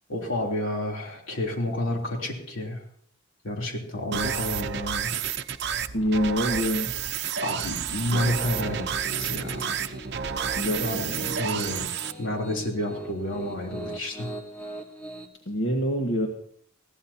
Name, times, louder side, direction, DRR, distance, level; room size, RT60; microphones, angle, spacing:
voice 1, 0.1-2.8 3.4-5.1 7.4-9.8 10.8-11.1 11.4-11.9 12.2-14.3, left 1 dB, 70° left, 0 dB, 3.5 m, -30 dB
sound 1, 4.1-12.1, right 7 dB, 60° right, 0.8 m, -30 dB
voice 2, 5.9-6.9 10.6-11.4 15.5-16.3, equal, 85° left, 1 dB, 1.7 m, -26 dB
Piano, 8.4-15.3, right 2 dB, 5° left, 1.7 m, -40 dB
21.0 x 16.0 x 2.9 m, 0.63 s
head